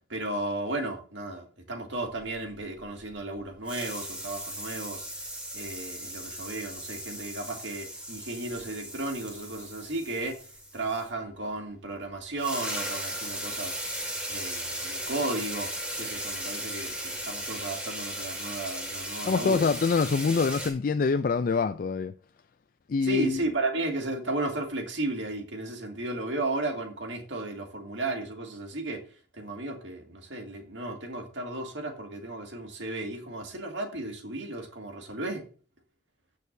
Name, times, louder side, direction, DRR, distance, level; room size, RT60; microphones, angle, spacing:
voice 1, 0.1-5.1 5.5-10.4 10.7-13.8 14.3-15.7 16.0-19.7 23.0-29.0 29.3-35.4, right 2 dB, 75° right, 2.2 m, -34 dB
sound 1, 2.1-3.4 3.7-11.1 12.1-12.2 12.4-20.7, right 1 dB, 5° right, 2.1 m, -37 dB
voice 2, 19.3-22.1 22.9-23.4, left 5 dB, 50° left, 0.3 m, -25 dB
15.5 x 6.5 x 2.7 m
head